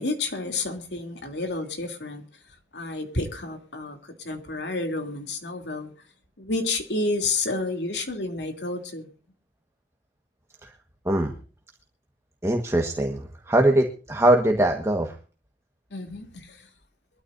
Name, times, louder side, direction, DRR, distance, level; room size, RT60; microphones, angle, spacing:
voice 1, 0.0-2.2 2.7-5.9 6.4-9.1 15.9-16.7, left 2 dB, 70° left, 3.1 m, -30 dB
voice 2, 12.4-15.1, right 1 dB, 15° right, 1.5 m, -22 dB
23.0 x 13.0 x 2.7 m
head